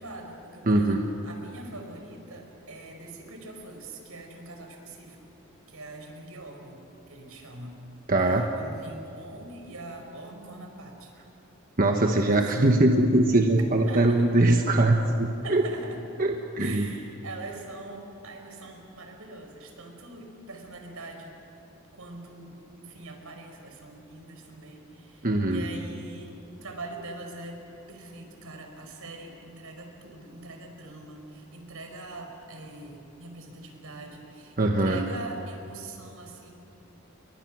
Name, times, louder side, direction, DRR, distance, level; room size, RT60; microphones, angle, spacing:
voice 1, 0.0-5.2 5.7-6.8 7.1-7.8 8.2-11.1 12.2-12.8 13.8-14.2 15.4-16.0 16.6-21.4 21.9-36.5, right 2 dB, 80° right, 3 dB, 4.7 m, -43 dB
voice 2, 0.7-1.0 8.1-8.4 11.8-15.6 16.2-16.9 25.2-25.6 34.6-35.1, right 2 dB, 40° right, 3 dB, 1.2 m, -22 dB
29.5 x 23.0 x 6.2 m, 3.0 s
head